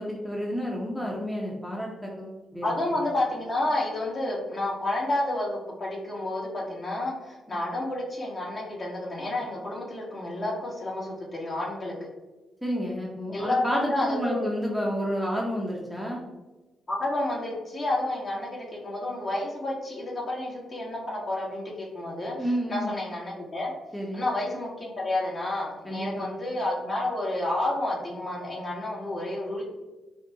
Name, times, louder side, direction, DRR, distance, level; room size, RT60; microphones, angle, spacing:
voice 1, 0.0-3.1 7.5-7.6 12.6-16.2 22.4-22.9 23.9-24.3 25.8-26.3, equal, ahead, -2 dB, 0.8 m, -30 dB
voice 2, 2.6-11.9 13.3-14.5 16.9-22.3 22.7-23.7 24.1-29.6, left 1 dB, 40° left, -3 dB, 1.4 m, -30 dB
5.0 x 2.1 x 2.8 m, 1.1 s
hypercardioid pair, 45°, 0 cm